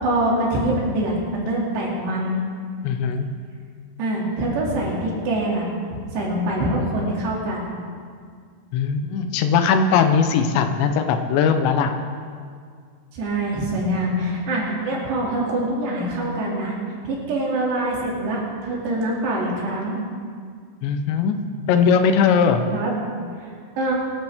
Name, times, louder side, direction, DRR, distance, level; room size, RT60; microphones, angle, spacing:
voice 1, 0.0-2.4 4.0-5.7 5.9-7.7 13.1-16.8 17.1-20.0 22.7-22.9 23.4-23.9, right 1 dB, 75° right, -4 dB, 4.7 m, -24 dB
voice 2, 2.8-3.3 8.7-11.9 20.8-21.4 21.7-22.6, left 6 dB, 85° left, 6 dB, 3.1 m, -19 dB
24.0 x 12.0 x 3.6 m, 2.1 s
omnidirectional pair, 5.0 m